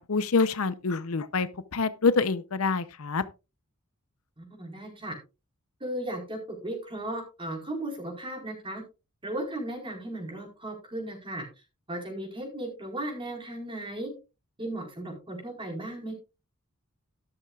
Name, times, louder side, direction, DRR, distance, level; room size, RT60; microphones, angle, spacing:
voice 1, 0.1-3.2, left 4 dB, 70° left, 0.7 m, -26 dB
voice 2, 4.4-5.1 5.8-8.8 9.2-11.5 11.9-14.1 14.6-16.1, right 1 dB, 25° right, 4.4 m, -36 dB
12.5 x 11.5 x 2.4 m
head